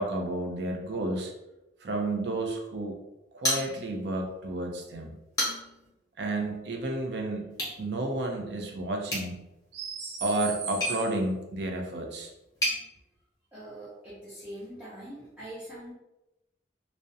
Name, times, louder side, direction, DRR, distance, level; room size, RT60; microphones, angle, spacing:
voice 1, 0.0-1.3 1.8-3.0 3.3-5.1 6.2-9.4 9.7-12.3, right 2 dB, 60° right, 2 dB, 0.4 m, -31 dB
sound 1, 3.4-4.2 4.5-4.6 5.1-5.9 7.5-7.8 9.0-12.8, equal, 20° left, 0.8 m, -33 dB
voice 2, 13.5-15.9, right 1 dB, 10° right, -10 dB, 0.5 m, -43 dB
2.4 x 2.1 x 2.6 m, 0.95 s
head